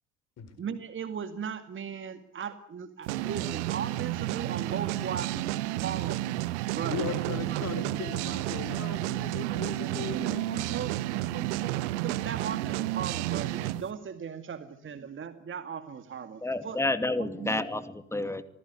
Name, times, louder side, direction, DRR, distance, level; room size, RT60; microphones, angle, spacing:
voice 1, 0.6-6.4 6.7-7.0 7.5-7.6 9.4-16.8 17.2-17.6, right 7 dB, 30° right, 10 dB, 2.2 m, -38 dB
sound 1, 3.1-13.8, right 16 dB, 70° right, 1.3 m, -31 dB
voice 2, 6.9-11.0, left 6 dB, 40° left, 12 dB, 4.4 m, -38 dB
voice 3, 16.4-18.4, left 2 dB, 5° left, 11 dB, 2.5 m, -30 dB
28.0 x 19.5 x 9.6 m, 0.68 s
figure-of-eight pair, 60°, 37 cm